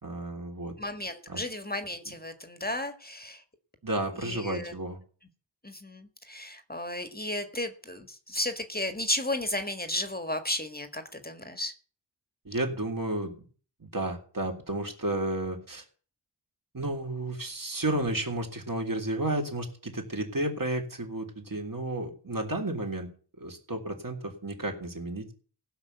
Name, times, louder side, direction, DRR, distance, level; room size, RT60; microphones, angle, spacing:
voice 1, 0.0-0.7 1.3-1.4 3.8-5.0 12.5-13.3 13.8-15.8 16.7-23.1 23.4-25.3, right 1 dB, 45° right, 1 dB, 3.4 m, -32 dB
voice 2, 0.8-3.4 4.2-4.7 5.6-11.7, left 1 dB, 20° left, 7 dB, 1.7 m, -34 dB
16.0 x 5.9 x 8.1 m, 0.42 s
wide cardioid pair, 50°, 45 cm